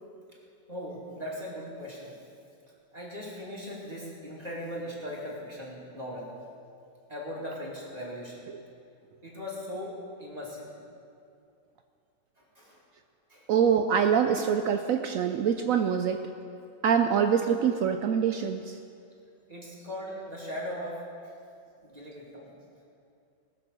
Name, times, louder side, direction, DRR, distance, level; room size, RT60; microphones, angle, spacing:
voice 1, 0.7-2.2 2.9-6.3 7.1-8.5 9.2-10.7 12.4-12.8 13.3-13.5 19.5-21.0 21.8-22.5, equal, 20° right, -5 dB, 2.6 m, -39 dB
voice 2, 13.5-16.2 16.8-18.7, right 7 dB, 85° right, 6 dB, 0.7 m, -25 dB
18.5 x 6.5 x 6.8 m, 2.5 s
omnidirectional pair, 2.0 m